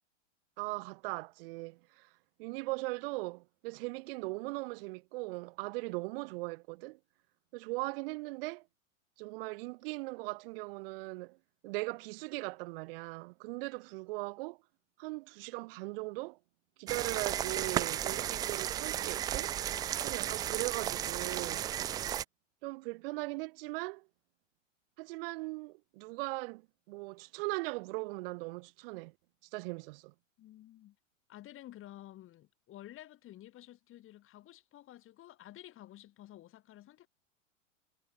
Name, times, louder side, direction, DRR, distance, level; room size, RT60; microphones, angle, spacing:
voice 1, 0.6-2.1 2.4-7.0 7.5-8.7 9.2-11.4 11.6-14.6 15.0-16.4 16.8-19.5 20.0-21.7 22.6-24.1 25.0-29.1 29.5-30.1, right 24 dB, 45° right, 0.9 m, -39 dB
sound 1, 16.9-22.2, right 11 dB, 10° right, 0.3 m, -34 dB
voice 2, 30.4-31.0 31.3-37.1, left 14 dB, 30° left, 6.3 m, -52 dB
hypercardioid pair, 110°, 39 cm